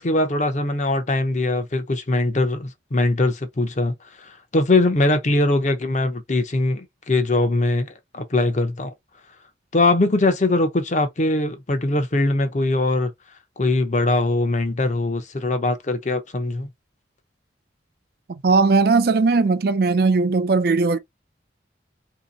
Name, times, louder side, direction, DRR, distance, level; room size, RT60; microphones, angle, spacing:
voice 1, 0.0-8.9 9.7-13.1 13.6-16.7, left 2 dB, 40° left, 0.7 m, -21 dB
voice 2, 18.3-21.0, right 4 dB, 55° right, 0.4 m, -18 dB
2.9 x 2.8 x 3.9 m
head